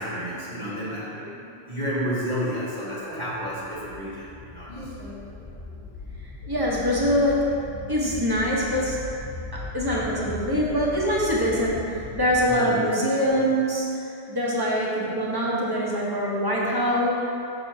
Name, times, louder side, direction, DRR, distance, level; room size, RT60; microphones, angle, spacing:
voice 1, 0.0-5.3 12.5-12.8, equal, 40° right, -10 dB, 1.5 m, -31 dB
sound 1, 3.5-12.5, left 3 dB, 60° left, 0.9 m, -38 dB
voice 2, 6.4-7.6 7.9-9.0 9.5-13.9 14.3-17.1, equal, 20° right, -5 dB, 1.0 m, -24 dB
6.7 x 6.0 x 2.7 m, 2.6 s
omnidirectional pair, 1.1 m